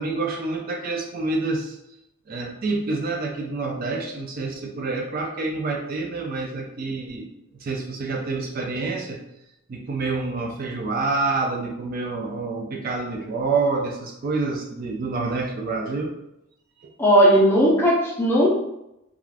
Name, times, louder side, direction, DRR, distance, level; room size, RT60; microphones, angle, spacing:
voice 1, 0.0-1.8 2.3-7.3 7.6-9.2 9.7-16.1 16.8-16.9, right 3 dB, 40° right, 1 dB, 0.3 m, -27 dB
voice 2, 17.0-18.5, equal, 10° left, -4 dB, 0.6 m, -17 dB
2.4 x 2.4 x 3.2 m, 0.85 s
head